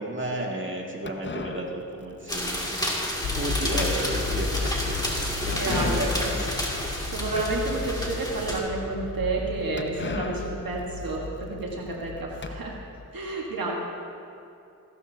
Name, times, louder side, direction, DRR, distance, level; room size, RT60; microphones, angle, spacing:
voice 1, 0.0-2.8 3.3-6.6, right 1 dB, 35° right, -2 dB, 2.1 m, -33 dB
sound 1, 1.1-8.3 8.7-8.8 9.0-9.1 9.8-12.5, left 4 dB, 35° left, 0.6 m, -39 dB
sound 2, 2.3-8.6, equal, 10° left, 2.2 m, -30 dB
sound 3, 3.2-13.1, left 4 dB, 85° left, 0.8 m, -34 dB
voice 2, 5.5-5.9 6.2-6.3 6.8-12.8 13.1-13.8, right 3 dB, 85° right, -2 dB, 1.4 m, -30 dB
16.0 x 12.5 x 2.7 m, 2.6 s
wide cardioid pair, 50°, 34 cm